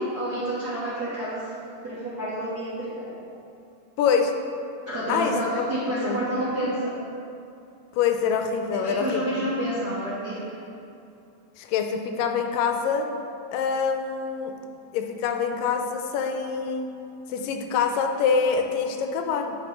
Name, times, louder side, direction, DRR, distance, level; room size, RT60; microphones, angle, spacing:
voice 1, 0.0-1.5 1.8-3.1 4.9-6.9 8.7-10.5, right 1 dB, 55° right, -11 dB, 1.1 m, -29 dB
voice 2, 4.0-4.4 5.1-6.2 7.9-9.2 11.6-13.1 13.5-14.6 14.9-16.9 17.3-19.6, left 6 dB, 85° left, 5 dB, 2.2 m, -25 dB
8.5 x 6.3 x 3.0 m, 2.7 s
omnidirectional pair, 3.8 m